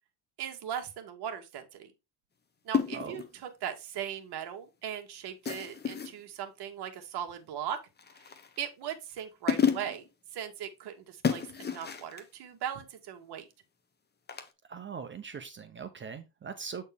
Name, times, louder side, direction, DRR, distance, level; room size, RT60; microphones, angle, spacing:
voice 1, 0.4-1.9 2.6-7.8 8.2-8.3 8.6-10.0 10.3-13.5, right 9 dB, 55° right, 1.8 m, -39 dB
sound 1, 2.7-3.3 5.4-6.2 8.0-8.6 9.2-9.3 9.5-10.1 11.2-12.2 14.3-14.5, left 7 dB, 20° left, 1.0 m, -31 dB
voice 2, 14.7-16.8, right 6 dB, 25° right, 0.7 m, -41 dB
8.2 x 4.4 x 3.5 m
cardioid pair, 120°, 47 cm